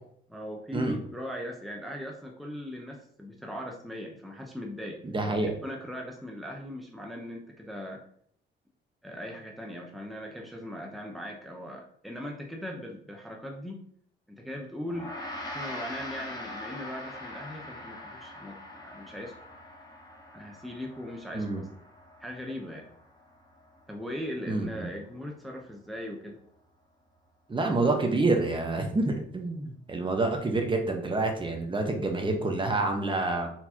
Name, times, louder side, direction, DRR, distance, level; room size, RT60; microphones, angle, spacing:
voice 1, 0.3-5.0 5.4-8.0 9.0-13.8 14.3-15.1 15.5-19.3 20.3-21.7 22.2-22.9 23.9-26.4, equal, ahead, 0 dB, 0.7 m, -39 dB
voice 2, 5.0-5.5 21.3-21.6 24.5-24.9 27.5-33.5, right 2 dB, 25° right, 3 dB, 1.1 m, -28 dB
Gong, 14.9-24.4, left 1 dB, 20° left, 1.2 m, -43 dB
4.6 x 3.8 x 2.8 m, 0.64 s
cardioid pair, 90°, 20 cm